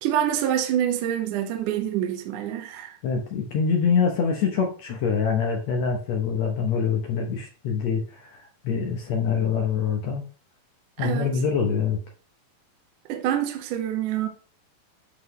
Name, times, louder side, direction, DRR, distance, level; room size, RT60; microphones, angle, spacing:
voice 1, 0.0-3.0 11.0-11.3 13.1-14.3, right 10 dB, 70° right, 2.2 m, -26 dB
voice 2, 3.0-10.2 11.0-12.0, left 6 dB, 70° left, 1.7 m, -25 dB
11.5 x 3.9 x 3.1 m
omnidirectional pair, 4.2 m